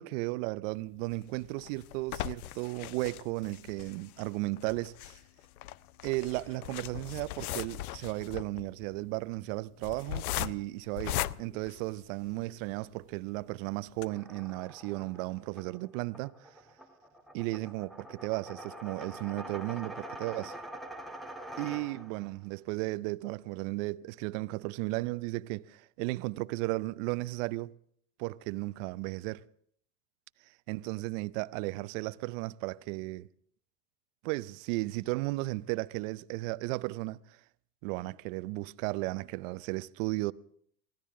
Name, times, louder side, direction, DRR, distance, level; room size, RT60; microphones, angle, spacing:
voice 1, 0.0-5.2 6.0-16.5 17.3-20.6 21.6-27.7 28.2-29.4 30.7-33.3 34.2-37.4 37.8-40.3, right 21 dB, 60° right, 0.7 m, -35 dB
sound 1, 1.1-12.5 13.0-13.1 13.4-13.5 13.9-14.0, left 14 dB, 80° left, 0.6 m, -39 dB
sound 2, 14.0-22.3, right 1 dB, ahead, 1.4 m, -45 dB
24.0 x 16.5 x 3.7 m
hypercardioid pair, 90°, 43 cm